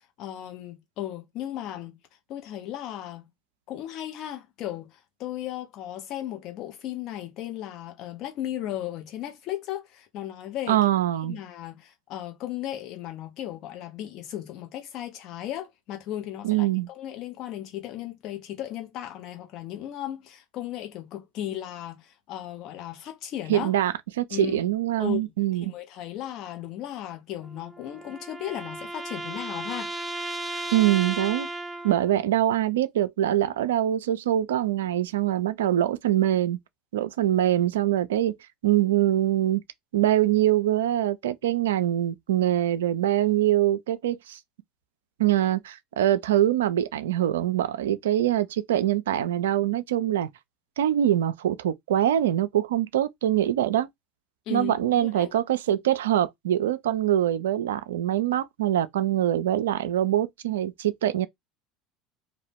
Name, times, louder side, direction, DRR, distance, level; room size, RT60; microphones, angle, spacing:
voice 1, 0.2-2.0 2.3-3.3 3.7-10.8 11.2-23.7 24.3-24.6 25.0-25.2 25.5-29.9 54.5-55.3, left 12 dB, 55° left, 0.9 m, -36 dB
voice 2, 10.7-11.4 16.4-16.9 23.5-25.7 30.7-31.5 31.8-36.6 36.9-38.4 38.6-39.6 39.9-44.4 45.2-50.3 50.8-53.9 54.5-61.3, right 12 dB, 75° right, 0.3 m, -24 dB
sound 1, 27.4-32.2, right 2 dB, 10° right, 0.5 m, -35 dB
2.5 x 2.1 x 3.5 m
hypercardioid pair, 70°, 0 cm